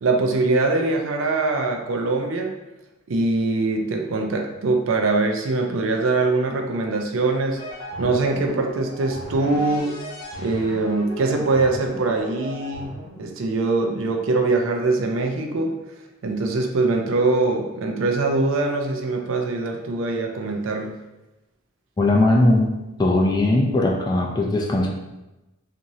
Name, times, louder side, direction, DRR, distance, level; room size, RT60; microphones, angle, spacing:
voice 1, 0.0-2.5 3.1-7.6 8.0-9.9 10.4-15.7 16.2-20.9, right 3 dB, 70° right, 3 dB, 0.4 m, -23 dB
sound 1, 7.6-13.3, equal, 85° left, 0.8 m, -36 dB
voice 2, 22.0-22.7 23.0-24.9, left 2 dB, 20° left, 0 dB, 0.3 m, -19 dB
3.0 x 2.5 x 2.6 m, 1.0 s
head